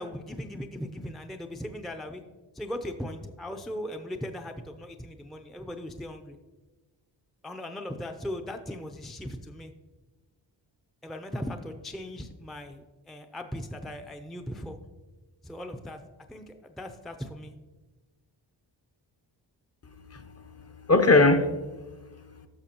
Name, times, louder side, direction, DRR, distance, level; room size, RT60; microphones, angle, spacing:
voice 1, 0.0-2.2 2.5-6.4 7.4-9.7 11.0-14.8 15.4-16.0 16.3-17.5, left 1 dB, ahead, 5 dB, 0.5 m, -38 dB
voice 2, 19.9-22.5, left 2 dB, 30° left, 9 dB, 0.8 m, -24 dB
13.5 x 5.8 x 2.9 m, 1.2 s
cardioid pair, 65°, 46 cm